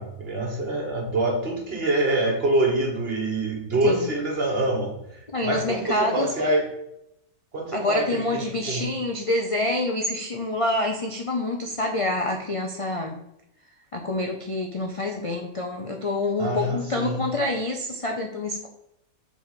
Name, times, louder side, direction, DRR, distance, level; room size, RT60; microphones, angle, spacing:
voice 1, 0.0-6.7 7.5-8.9 16.4-17.2, right 2 dB, 40° right, 1 dB, 1.6 m, -25 dB
voice 2, 5.3-6.3 7.7-13.2 13.9-18.7, left 2 dB, 45° left, 2 dB, 0.4 m, -27 dB
6.0 x 3.9 x 5.7 m, 0.81 s
omnidirectional pair, 1.6 m